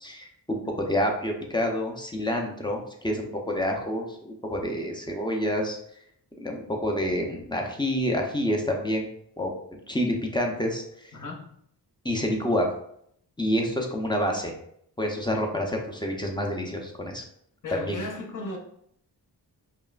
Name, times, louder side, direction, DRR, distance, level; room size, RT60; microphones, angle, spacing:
voice 1, 0.0-5.8 6.4-9.1 9.4-9.5 9.9-10.8 12.0-12.7 13.4-14.5 15.0-17.2 17.8-18.0, equal, 10° left, 1 dB, 0.6 m, -28 dB
voice 2, 11.1-11.6 17.6-18.6, left 2 dB, 50° left, 0 dB, 0.8 m, -35 dB
5.3 x 2.1 x 2.4 m, 0.70 s
wide cardioid pair, 80°, 41 cm